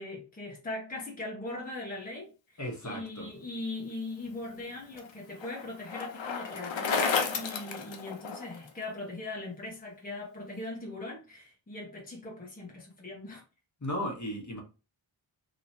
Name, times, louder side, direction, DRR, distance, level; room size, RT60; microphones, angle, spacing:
voice 1, 0.0-13.4, left 2 dB, 20° left, 1.0 m, -40 dB
voice 2, 2.6-3.3 13.8-14.6, equal, 35° left, 1.3 m, -35 dB
Bicycle, 4.3-8.7, left 5 dB, 70° left, 0.8 m, -33 dB
3.0 x 2.9 x 2.8 m
cardioid pair, 55°, 47 cm